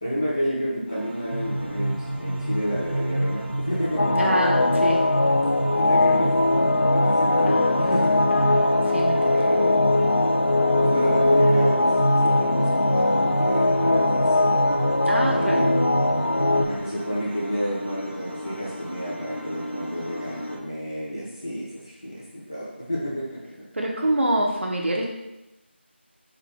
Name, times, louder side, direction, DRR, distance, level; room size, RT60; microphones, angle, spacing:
voice 1, 0.0-4.6 5.7-8.4 9.3-10.0 10.8-14.6 15.3-15.7 16.5-23.4, equal, 20° left, -7 dB, 0.7 m, -30 dB
sound 1, 0.9-20.6, equal, 85° left, 1.1 m, -39 dB
sound 2, 1.3-16.8, right 1 dB, 35° right, 0.4 m, -28 dB
sound 3, 4.0-16.7, left 2 dB, 65° left, 0.4 m, -21 dB
voice 2, 4.2-5.0 8.9-9.4 15.1-15.7 23.7-25.1, right 1 dB, 75° right, -1 dB, 0.8 m, -25 dB
4.0 x 2.6 x 3.3 m, 0.93 s
figure-of-eight pair, 180°, 6 cm